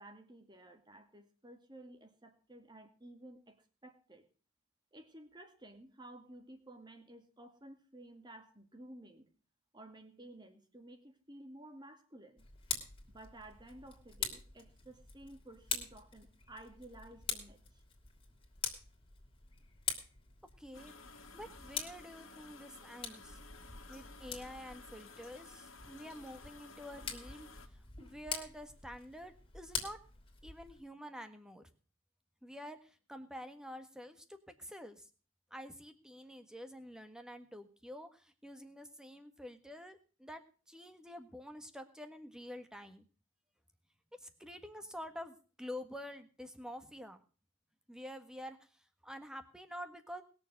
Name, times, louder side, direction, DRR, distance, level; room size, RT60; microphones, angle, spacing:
voice 1, 0.0-4.3 4.9-9.3 9.7-12.5 13.1-17.8, right 1 dB, 20° right, 7 dB, 2.1 m, -54 dB
Tick, 12.4-30.8, left 6 dB, 25° left, 2.9 m, -45 dB
voice 2, 20.6-21.0 21.3-23.4 23.9-30.0 30.4-31.6 32.4-35.1 35.5-43.1 44.2-47.2 47.9-50.2, equal, 5° right, 8 dB, 1.5 m, -48 dB
sound 1, 20.7-27.7, left 3 dB, 70° left, 2.0 m, -55 dB
20.5 x 7.1 x 6.6 m, 0.38 s
head